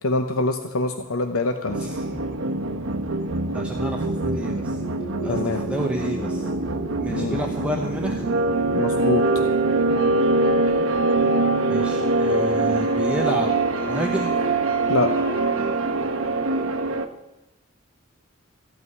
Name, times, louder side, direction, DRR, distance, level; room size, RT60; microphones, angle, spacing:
voice 1, 0.0-1.9 5.3-5.6 7.1-7.4 8.7-9.3 14.9-15.1, left 2 dB, 85° left, 6 dB, 0.8 m, -24 dB
sound 1, 1.7-17.1, right 2 dB, 75° right, 1.2 m, -23 dB
voice 2, 1.8-2.1 3.5-4.8 5.2-6.5 7.0-8.3 11.7-13.5 13.9-14.3, equal, 5° right, 1 dB, 0.9 m, -30 dB
14.5 x 5.8 x 9.5 m, 0.93 s
head